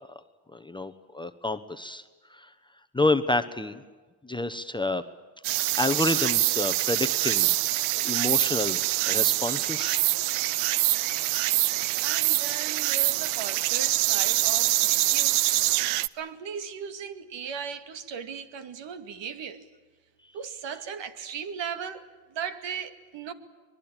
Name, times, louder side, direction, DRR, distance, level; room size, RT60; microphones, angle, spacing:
voice 1, 0.5-2.0 2.9-3.8 4.2-5.0 5.8-7.5 8.0-10.0, left 2 dB, 10° left, 1.0 m, -28 dB
sound 1, 5.4-16.1, right 18 dB, 85° right, 0.8 m, -25 dB
voice 2, 12.0-19.6 20.3-23.3, right 7 dB, 60° right, 2.3 m, -37 dB
25.0 x 21.5 x 8.9 m
cardioid pair, 115°, 48 cm